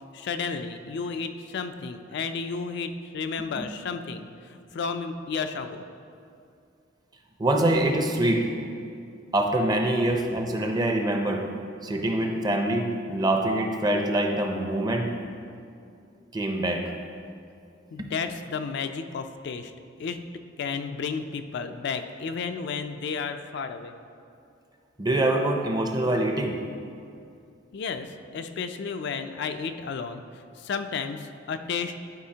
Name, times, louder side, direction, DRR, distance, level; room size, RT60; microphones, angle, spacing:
voice 1, 0.1-5.8 17.9-19.7 20.0-20.2 20.6-23.9 27.7-30.2 30.6-31.9, left 5 dB, 60° left, 8 dB, 0.4 m, -32 dB
voice 2, 7.4-8.5 9.3-11.4 11.8-15.1 16.3-16.8 18.0-18.1 25.0-26.5, right 1 dB, 20° right, 3 dB, 0.5 m, -24 dB
11.5 x 4.9 x 2.8 m, 2.5 s
head